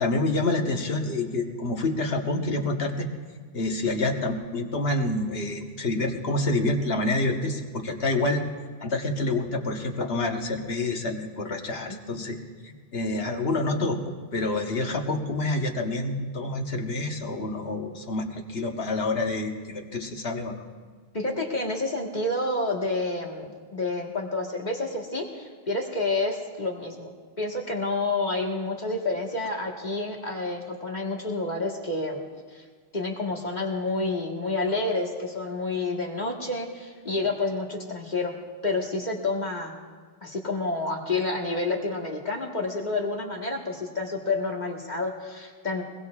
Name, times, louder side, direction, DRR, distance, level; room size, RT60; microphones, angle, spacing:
voice 1, 0.0-3.1 3.5-8.4 8.8-12.4 12.6-20.7, left 2 dB, 75° left, 3 dB, 1.5 m, -27 dB
voice 2, 21.1-32.2 32.5-32.6 32.9-38.3 38.6-39.8 40.2-45.8, left 2 dB, 45° left, 0 dB, 1.6 m, -29 dB
21.5 x 21.5 x 2.4 m, 1.5 s
omnidirectional pair, 1.0 m